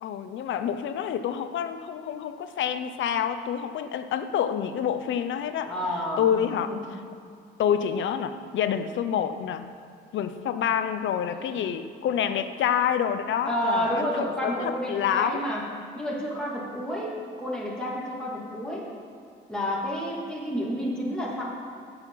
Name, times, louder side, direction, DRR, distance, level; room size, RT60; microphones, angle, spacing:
voice 1, 0.0-5.7 6.2-6.7 7.6-9.6 10.1-15.4, left 9 dB, 75° left, 10 dB, 0.8 m, -27 dB
voice 2, 5.6-6.4 6.7-6.8 11.4-11.6 13.5-15.6 16.0-17.1 17.4-18.9 19.5-21.4, equal, 5° left, -6 dB, 2.7 m, -30 dB
17.5 x 6.9 x 4.1 m, 2.4 s
cardioid pair, 90°, 20 cm